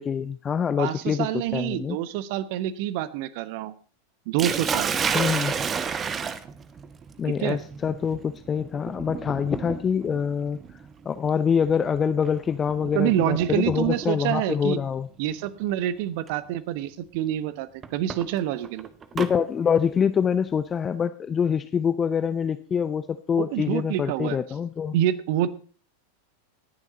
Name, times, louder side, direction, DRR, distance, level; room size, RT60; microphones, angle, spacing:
voice 1, 0.0-1.3 1.5-2.0 5.1-5.5 7.2-15.1 19.1-25.0, left 7 dB, 20° left, 12 dB, 0.5 m, -25 dB
voice 2, 0.8-3.7 4.3-4.9 7.2-7.6 12.9-14.8 15.2-18.9 23.4-24.4 24.9-25.5, right 12 dB, 50° right, 17 dB, 0.9 m, -27 dB
Sink (filling or washing), 4.4-14.3 15.4-15.8 16.3-16.4 17.8-19.3, right 6 dB, 25° right, 0.9 m, -32 dB
19.0 x 7.3 x 4.1 m, 0.40 s
figure-of-eight pair, 90°, 0 cm